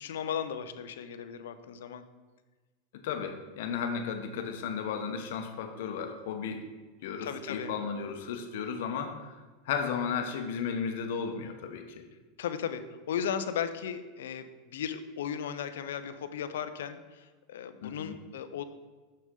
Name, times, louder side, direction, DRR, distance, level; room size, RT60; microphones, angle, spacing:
voice 1, 0.0-2.0 7.2-7.7 12.4-18.6, left 8 dB, 90° left, 11 dB, 0.5 m, -36 dB
voice 2, 3.0-6.7 7.0-9.4 9.7-12.0 17.8-18.1, left 6 dB, 70° left, 6 dB, 0.9 m, -34 dB
6.7 x 6.2 x 3.8 m, 1.3 s
supercardioid pair, 140°, 0 cm